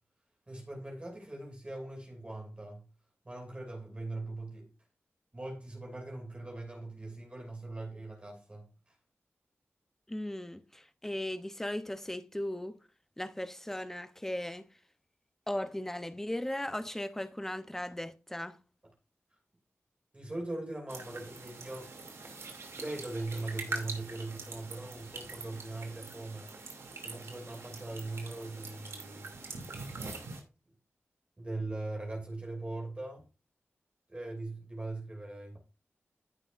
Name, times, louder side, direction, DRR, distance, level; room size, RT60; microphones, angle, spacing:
voice 1, 0.5-2.9 3.2-4.7 5.3-8.9 20.1-21.9 22.7-26.5 27.0-29.3 31.4-33.3 34.1-35.6, right 2 dB, 25° right, 2.6 m, -40 dB
voice 2, 10.1-12.8 13.2-14.7 15.5-18.6, left 1 dB, 10° left, 0.7 m, -37 dB
sound 1, 20.9-30.4, right 3 dB, 90° right, 2.7 m, -44 dB
15.0 x 6.2 x 2.5 m
wide cardioid pair, 100°, 4 cm